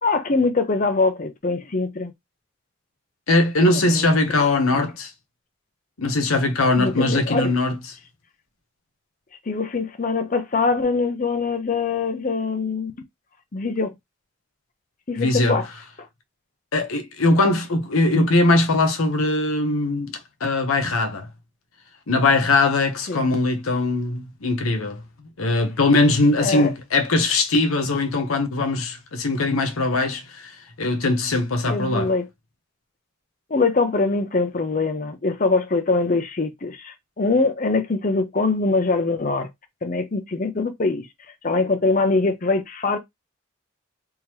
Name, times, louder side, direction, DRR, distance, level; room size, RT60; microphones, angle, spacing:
voice 1, 0.0-2.1 3.7-4.4 6.7-7.5 9.5-12.9 13.5-13.9 15.1-15.7 23.1-23.3 26.4-26.7 31.7-32.3 33.5-39.5 39.8-41.1 41.4-43.0, left 3 dB, 40° left, 0.6 m, -23 dB
voice 2, 3.3-5.1 6.0-7.8 15.2-15.6 16.7-21.3 22.1-25.0 25.4-32.1, left 2 dB, 85° left, 0.9 m, -21 dB
3.7 x 3.0 x 2.9 m
head